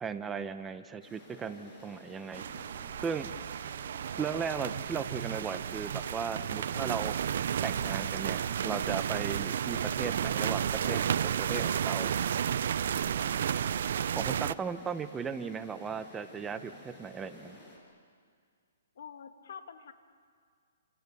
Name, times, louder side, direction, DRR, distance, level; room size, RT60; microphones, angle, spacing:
voice 1, 0.0-2.4 3.0-3.3 4.2-7.2 7.6-12.1 14.1-17.6, right 6 dB, 10° right, 10 dB, 0.8 m, -37 dB
sound 1, 1.0-17.8, left 1 dB, 15° left, 7.2 m, -52 dB
sound 2, 2.3-14.5, right 9 dB, 60° right, 0.6 m, -32 dB
sound 3, 7.0-12.5, right 7 dB, 45° right, 3.5 m, -57 dB
voice 2, 18.9-19.9, left 7 dB, 65° left, 7 dB, 2.4 m, -46 dB
28.5 x 27.5 x 7.0 m, 2.1 s
hypercardioid pair, 155°, 0 cm